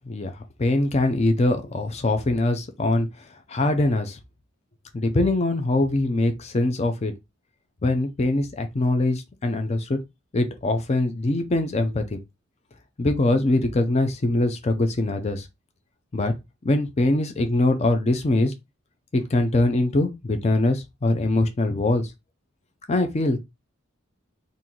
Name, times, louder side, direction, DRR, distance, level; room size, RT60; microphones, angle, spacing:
voice 1, 0.1-4.2 4.9-7.1 7.8-10.0 10.3-12.2 13.0-15.5 16.1-16.3 16.6-18.5 19.1-22.1 22.9-23.4, left 2 dB, 30° left, 0.5 m, -23 dB
2.9 x 2.6 x 3.8 m
head